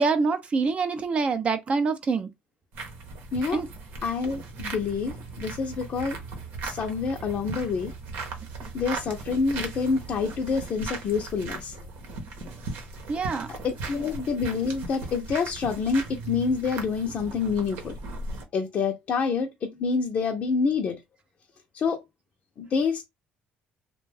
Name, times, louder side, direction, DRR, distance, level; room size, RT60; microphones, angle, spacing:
voice 1, 0.0-2.3 3.5-3.7 8.6-8.7 12.4-12.5 13.1-13.5, right 4 dB, 40° right, 0.5 m, -25 dB
sound 1, 2.7-18.4, right 3 dB, 80° right, 0.9 m, -38 dB
voice 2, 4.0-6.2 6.6-7.9 8.7-11.7 13.5-18.0 18.5-21.0 21.7-22.0 22.6-23.1, left 5 dB, 50° left, 0.5 m, -27 dB
2.4 x 2.2 x 3.3 m
cardioid pair, 100°, 3 cm